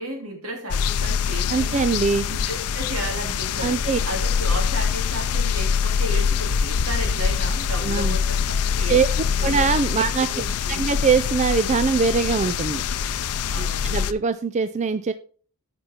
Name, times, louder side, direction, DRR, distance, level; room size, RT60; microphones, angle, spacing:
voice 1, 0.0-1.9 2.3-9.6 10.0-10.9 13.5-14.0, equal, 75° right, 2 dB, 2.8 m, -34 dB
sound 1, 0.7-14.1, left 6 dB, 85° left, 0.5 m, -24 dB
voice 2, 1.5-2.3 3.6-4.0 7.8-8.2 8.9-9.1 9.4-10.3 10.7-12.8 13.6-15.1, right 5 dB, 30° right, 12 dB, 0.3 m, -22 dB
13.5 x 5.3 x 4.3 m, 0.43 s
head